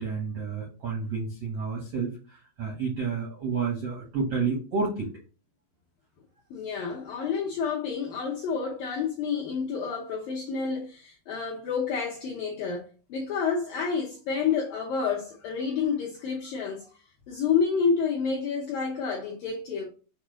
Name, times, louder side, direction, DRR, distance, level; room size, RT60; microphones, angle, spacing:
voice 1, 0.0-2.1 2.6-5.1, right 5 dB, 80° right, 1.4 m, -30 dB
voice 2, 6.5-16.9 17.3-19.9, left 6 dB, 80° left, 2.0 m, -29 dB
7.1 x 2.6 x 5.0 m
omnidirectional pair, 5.2 m